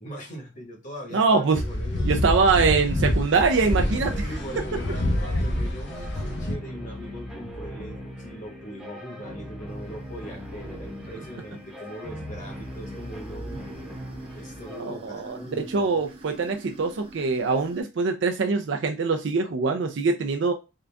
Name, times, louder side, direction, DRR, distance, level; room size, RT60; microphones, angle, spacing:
voice 1, 0.0-2.1 2.7-3.0 4.2-13.7 14.3-16.0, equal, 40° left, 1.3 m, -40 dB
voice 2, 1.1-1.6 2.0-4.2 14.8-20.5, right 4 dB, 65° right, 0.4 m, -23 dB
sound 1, 1.5-6.6, left 1 dB, 60° left, 0.7 m, -27 dB
sound 2, 3.6-14.8, equal, ahead, 0.8 m, -39 dB
sound 3, 9.7-17.8, right 1 dB, 30° right, 0.8 m, -47 dB
3.8 x 2.3 x 3.4 m
head